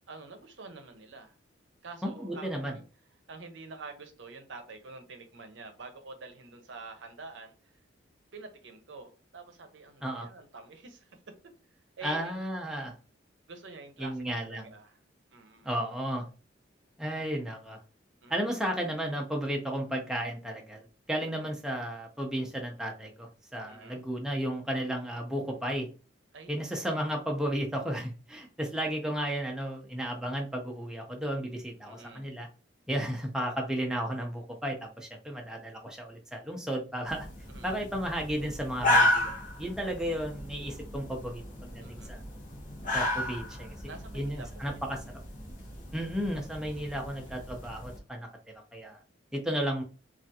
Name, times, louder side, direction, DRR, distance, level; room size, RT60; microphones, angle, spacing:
voice 1, 0.1-1.4 1.8-2.8 3.3-7.5 8.3-11.1 12.0-12.3 13.5-15.0 15.3-15.7 18.2-18.7 23.7-24.0 26.3-26.5 31.8-32.3 37.5-37.8 39.8-39.9 41.8-42.2 43.9-44.8 47.3-47.4, right 3 dB, 70° right, 0.6 m, -47 dB
voice 2, 2.2-2.7 10.0-10.3 12.0-12.9 14.0-14.7 15.6-16.3 17.0-17.8 18.3-25.9 26.5-32.5 32.9-37.3 37.6-39.3 39.6-41.4 41.7-42.2 42.9-43.7 44.1-45.0 45.9-48.3 48.7-49.0 49.3-49.8, equal, 5° right, 0.4 m, -33 dB
sound 1, 37.1-48.0, left 1 dB, 45° left, 0.8 m, -33 dB
3.3 x 2.4 x 2.7 m
head